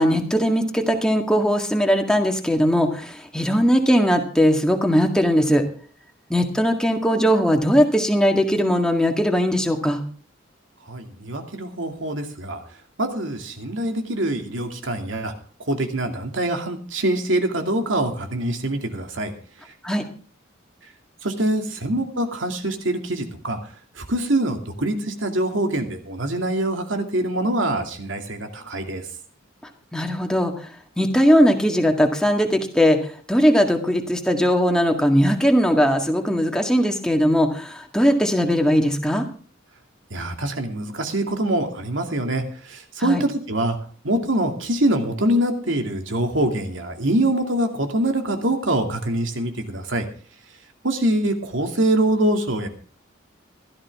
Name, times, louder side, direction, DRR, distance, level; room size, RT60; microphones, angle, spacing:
voice 1, 0.0-5.6 6.3-10.0 19.8-20.0 29.9-30.5 31.0-33.0 33.3-39.3 43.0-43.2, equal, 5° left, 3 dB, 1.8 m, -19 dB
voice 2, 10.9-12.6 13.0-15.3 15.7-19.3 21.2-23.6 24.0-29.0 40.1-43.8 44.0-50.1 50.8-52.7, right 1 dB, 80° right, 4 dB, 2.5 m, -24 dB
16.5 x 13.0 x 3.6 m, 0.43 s
head